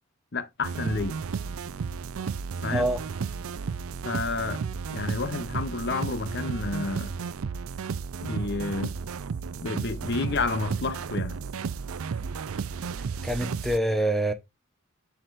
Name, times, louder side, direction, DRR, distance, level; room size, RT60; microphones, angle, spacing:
voice 1, 0.3-1.2 2.6-2.9 4.0-4.6 4.9-7.1 8.2-8.9 9.6-11.4, left 3 dB, 55° left, 0.7 m, -30 dB
sound 1, 0.6-13.8, right 5 dB, 85° right, 0.5 m, -33 dB
voice 2, 2.7-3.0 13.2-14.3, right 1 dB, ahead, 0.7 m, -25 dB
7.7 x 5.9 x 2.5 m
head